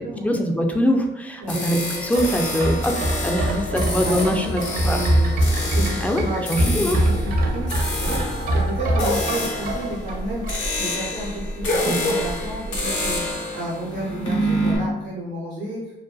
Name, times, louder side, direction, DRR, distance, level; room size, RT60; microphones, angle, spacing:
voice 1, 0.2-5.0 6.0-7.0 11.8-12.0, equal, 5° left, 2 dB, 0.3 m, -23 dB
sound 1, 1.5-14.8, left 1 dB, 70° left, 0.9 m, -29 dB
sound 2, 2.0-11.0 11.3-11.4, right 1 dB, 50° right, 0.5 m, -24 dB
voice 2, 3.9-5.3 5.7-7.7 8.0-13.2 13.5-15.9, right 1 dB, 85° right, -8 dB, 0.8 m, -31 dB
sound 3, 7.5-10.9 11.2-13.2, left 1 dB, 50° left, 0.6 m, -28 dB
2.5 x 2.2 x 2.3 m, 1.0 s
cardioid pair, 90°, 20 cm